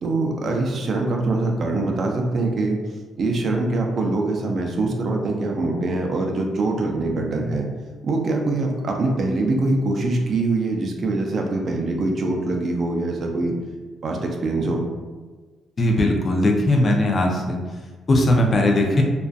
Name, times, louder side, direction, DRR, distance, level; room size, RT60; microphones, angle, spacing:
voice 1, 0.0-2.8 3.2-7.7 8.0-13.5 14.0-14.8, right 2 dB, 50° right, 1 dB, 0.4 m, -23 dB
voice 2, 15.8-17.6 18.1-19.0, left 1 dB, 40° left, 1 dB, 0.4 m, -19 dB
2.5 x 2.3 x 2.3 m, 1.3 s
cardioid pair, 90°, 0 cm